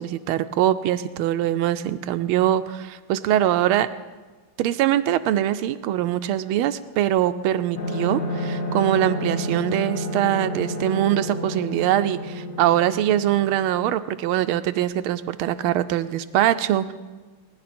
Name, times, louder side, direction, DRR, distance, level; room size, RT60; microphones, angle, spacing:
voice 1, 0.0-3.9 4.6-16.9, right 12 dB, 85° right, 12 dB, 1.4 m, -23 dB
sound 1, 7.7-14.0, left 1 dB, 40° left, 2.0 m, -30 dB
19.5 x 10.5 x 4.3 m, 1.3 s
omnidirectional pair, 2.3 m